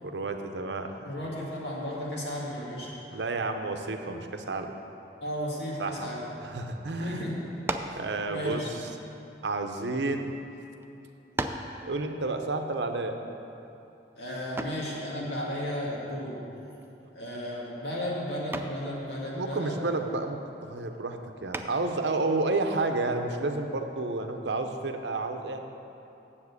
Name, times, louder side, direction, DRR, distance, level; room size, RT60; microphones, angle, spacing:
voice 1, 0.0-1.2 3.1-4.7 5.8-6.1 6.4-7.3 8.0-8.9 9.4-10.3 11.8-13.2 19.3-25.6, right 2 dB, 80° right, 6 dB, 0.7 m, -31 dB
voice 2, 1.0-3.2 5.2-6.2 7.0-7.4 8.3-8.7 14.2-16.4 17.1-19.8, equal, 70° left, -5 dB, 2.3 m, -34 dB
sound 1, 7.6-8.1 9.0-10.2 10.8-10.9 11.4-11.8 14.6-14.9 16.8-17.2 17.6-17.9 18.5-18.9 21.5-22.0, right 2 dB, 15° right, 0.4 m, -35 dB
7.3 x 7.0 x 8.2 m, 2.9 s
head